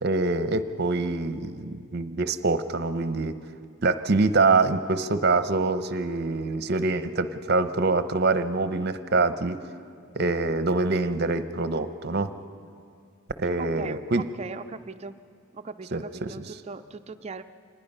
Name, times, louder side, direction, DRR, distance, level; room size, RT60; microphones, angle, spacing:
voice 1, 0.0-3.3 3.8-9.6 10.2-12.3 13.4-14.3 15.9-16.3, right 3 dB, 50° right, 11 dB, 0.8 m, -25 dB
voice 2, 13.6-15.2 15.5-17.4, right 4 dB, 30° right, 10 dB, 0.4 m, -39 dB
26.0 x 19.5 x 5.5 m, 2.3 s
head